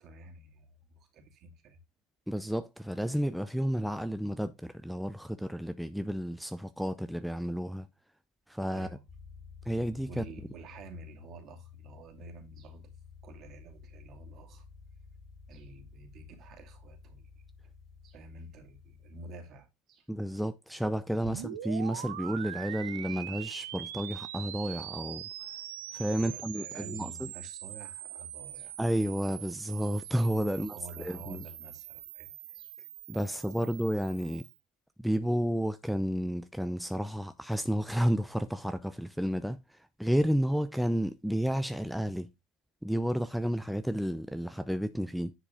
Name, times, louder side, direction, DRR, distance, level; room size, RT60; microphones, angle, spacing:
voice 1, 0.0-1.8 8.7-9.0 10.1-12.9 13.2-14.7 15.5-17.3 18.0-20.1 21.3-21.4 26.1-28.8 30.0-30.1 30.5-32.7 33.2-33.3 33.6-33.7, right 2 dB, 45° right, 2.6 m, -49 dB
voice 2, 2.3-7.9 8.5-8.9 9.7-10.2 20.1-25.2 25.9-27.3 28.8-30.8 31.0-31.4 33.1-34.4 35.0-42.3 42.8-45.3, equal, ahead, 0.6 m, -31 dB
sound 1, 9.1-19.3, left 6 dB, 40° left, 5.0 m, -52 dB
sound 2, 21.2-34.6, right 12 dB, 75° right, 0.8 m, -43 dB
10.0 x 4.8 x 3.6 m
hypercardioid pair, 80°, 0 cm